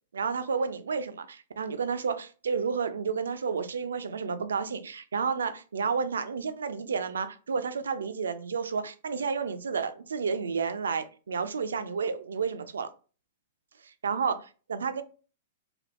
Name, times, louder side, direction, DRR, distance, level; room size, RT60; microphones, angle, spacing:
voice 1, 0.1-12.9 13.8-15.0, right 5 dB, 70° right, 0.4 m, -31 dB
3.4 x 2.6 x 2.5 m
figure-of-eight pair, 105°, 0 cm